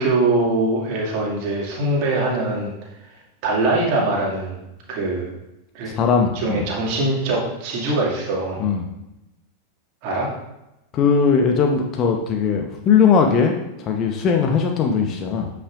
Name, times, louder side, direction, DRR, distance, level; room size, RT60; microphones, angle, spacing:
voice 1, 0.0-2.7 3.4-5.3 5.7-5.9 6.3-8.6 10.0-10.3, right 2 dB, 45° right, -3 dB, 2.3 m, -22 dB
voice 2, 5.8-6.6 8.6-8.8 10.9-15.5, left 6 dB, 30° left, 3 dB, 1.0 m, -19 dB
9.8 x 5.8 x 2.6 m, 0.92 s
figure-of-eight pair, 90°, 0 cm